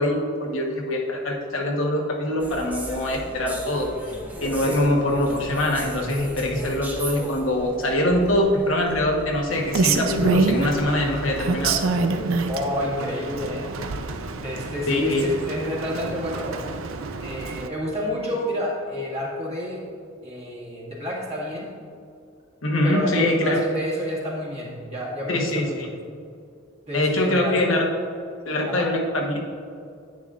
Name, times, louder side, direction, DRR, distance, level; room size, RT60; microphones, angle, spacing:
voice 1, 0.0-3.9 4.4-11.8 14.9-15.2 22.6-23.6 25.3-25.9 26.9-27.9 28.4-29.4, left 1 dB, 70° left, 0 dB, 1.2 m, -23 dB
sound 1, 2.4-11.9, right 1 dB, 10° right, 0.8 m, -38 dB
sound 2, 5.2-7.2 11.2-13.2, right 1 dB, 15° left, 1.0 m, -39 dB
Rain, 9.5-17.7, right 3 dB, 80° right, 0.5 m, -27 dB
voice 2, 12.5-13.8 14.3-16.6 17.2-19.8 20.2-21.7 22.8-25.9 26.9-27.6 28.6-28.9, equal, 30° right, -5 dB, 1.8 m, -29 dB
10.5 x 8.5 x 2.5 m, 2.3 s
head